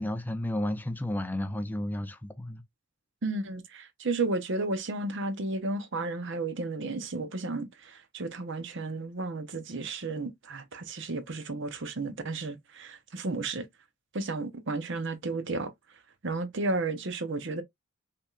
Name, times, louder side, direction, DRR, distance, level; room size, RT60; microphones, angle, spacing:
voice 1, 0.0-2.6, left 1 dB, 10° left, 0.5 m, -32 dB
voice 2, 3.2-13.7 14.1-15.7 16.2-17.6, right 3 dB, 55° right, 0.8 m, -33 dB
5.5 x 3.5 x 2.4 m
head